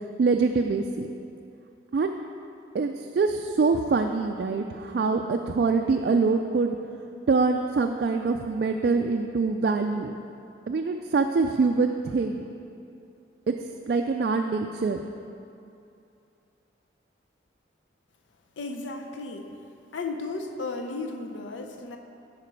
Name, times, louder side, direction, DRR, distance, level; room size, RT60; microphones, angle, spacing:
voice 1, 0.2-1.1 1.9-2.1 2.7-6.8 7.3-10.1 10.7-12.4 13.5-13.6 13.9-15.0, right 4 dB, 55° right, 4 dB, 0.3 m, -24 dB
voice 2, 18.6-19.5 19.9-22.0, left 3 dB, 85° left, 4 dB, 0.6 m, -34 dB
11.5 x 5.1 x 4.6 m, 2.7 s
head